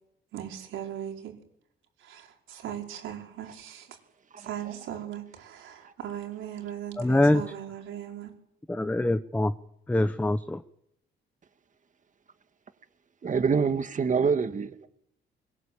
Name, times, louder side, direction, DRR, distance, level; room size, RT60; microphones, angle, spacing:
voice 1, 0.3-1.3 2.0-4.0 4.4-8.3, right 10 dB, 85° right, 5.3 m, -38 dB
voice 2, 7.0-7.4 8.7-9.5 9.9-10.6, left 1 dB, 10° left, 0.9 m, -24 dB
voice 3, 13.2-14.9, right 5 dB, 40° right, 1.9 m, -25 dB
22.5 x 20.5 x 8.7 m
cardioid pair, 90°, 20 cm